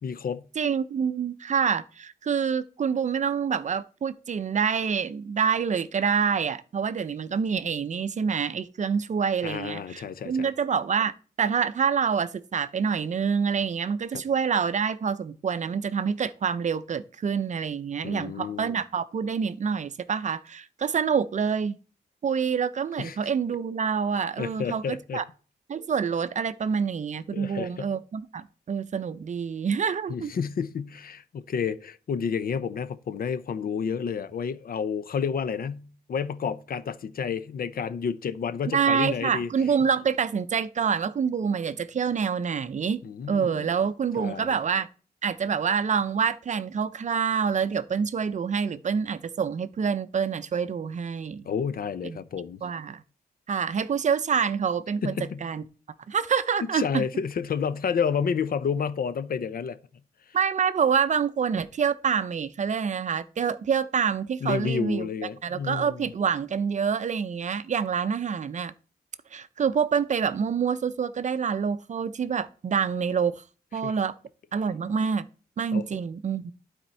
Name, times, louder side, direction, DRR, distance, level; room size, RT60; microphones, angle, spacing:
voice 1, 0.0-0.4 9.4-10.5 14.1-14.2 18.0-18.8 23.0-23.2 24.4-25.2 27.3-27.9 30.1-39.5 43.0-43.7 44.2-44.6 51.4-52.6 55.0-55.4 56.7-59.8 64.4-66.1 73.8-73.9 75.7-75.8, left 6 dB, 60° left, 0.6 m, -30 dB
voice 2, 0.6-21.8 22.2-25.2 25.7-30.3 38.7-43.0 43.3-44.9 45.2-51.5 52.0-52.2 52.6-53.0 53.5-55.1 55.4-55.6 56.1-57.0 60.3-65.1 65.4-68.7 69.3-73.4 73.7-74.2 74.5-75.3 75.6-76.5, right 6 dB, 45° right, 0.5 m, -27 dB
12.0 x 4.3 x 4.4 m
wide cardioid pair, 150°, 17 cm